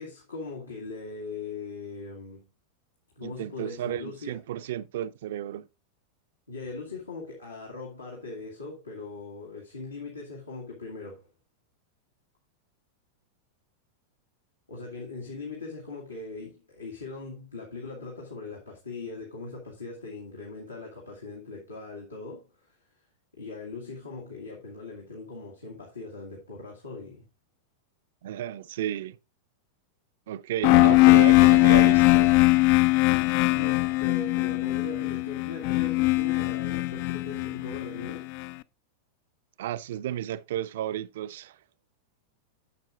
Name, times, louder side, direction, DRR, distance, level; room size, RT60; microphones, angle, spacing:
voice 1, 0.0-2.5 3.2-4.4 6.5-11.3 14.7-22.8 23.4-27.3 33.5-38.3, left 3 dB, 80° left, 2.1 m, -40 dB
voice 2, 3.2-5.7 28.2-29.2 30.3-32.4 39.6-41.6, right 11 dB, 55° right, 0.5 m, -33 dB
sound 1, 30.6-38.4, left 20 dB, 45° left, 0.4 m, -20 dB
11.0 x 7.5 x 2.4 m
figure-of-eight pair, 90°, 0 cm